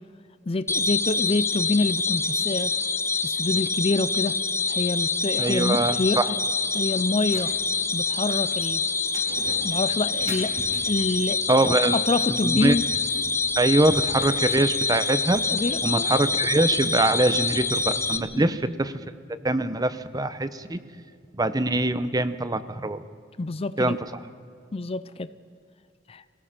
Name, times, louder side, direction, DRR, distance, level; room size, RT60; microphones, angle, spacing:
voice 1, 0.5-2.7 3.2-4.4 4.7-6.4 6.7-7.5 7.9-8.8 9.6-10.5 10.9-11.4 11.6-12.8 15.5-16.1 18.4-18.6 23.4-24.0 24.7-25.3 26.1-26.2, left 3 dB, 30° left, 15 dB, 0.5 m, -27 dB
sound 1, 0.7-18.2, left 4 dB, 15° left, 0.9 m, -26 dB
voice 2, 5.4-6.3 11.5-12.0 12.4-12.8 13.6-15.4 15.8-18.9 19.4-20.8 21.3-23.0 23.8-24.0, right 2 dB, 20° right, 13 dB, 0.7 m, -23 dB
sound 2, 7.2-18.2, right 1 dB, 35° right, 5.9 m, -45 dB
26.0 x 17.5 x 5.8 m, 2.3 s
head